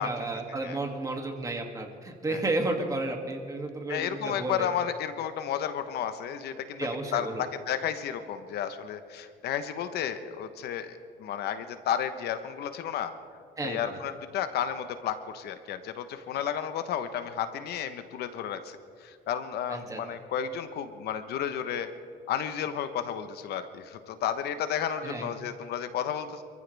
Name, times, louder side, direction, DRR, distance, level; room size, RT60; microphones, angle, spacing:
voice 1, 0.0-4.7 6.8-7.4 13.6-14.0 19.7-20.0 25.0-25.3, right 2 dB, 20° right, 2 dB, 2.5 m, -32 dB
voice 2, 3.9-13.1 13.6-21.9 22.3-26.4, left 9 dB, 75° left, 10 dB, 1.2 m, -32 dB
27.0 x 15.0 x 3.5 m, 2.3 s
cardioid pair, 110°, 17 cm